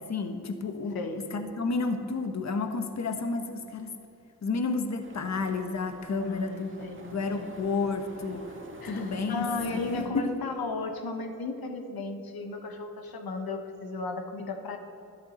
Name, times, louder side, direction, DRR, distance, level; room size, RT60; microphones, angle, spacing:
voice 1, 0.0-3.9 4.4-6.7 7.0-8.4 8.8-9.5 9.7-10.3, left 4 dB, 50° left, 6 dB, 1.2 m, -31 dB
sound 1, 5.0-10.1, right 2 dB, 35° right, 1.8 m, -47 dB
voice 2, 6.2-7.5 8.8-14.8, left 3 dB, 80° left, 5 dB, 1.1 m, -35 dB
12.0 x 11.5 x 4.3 m, 2.7 s
cardioid pair, 50°, 36 cm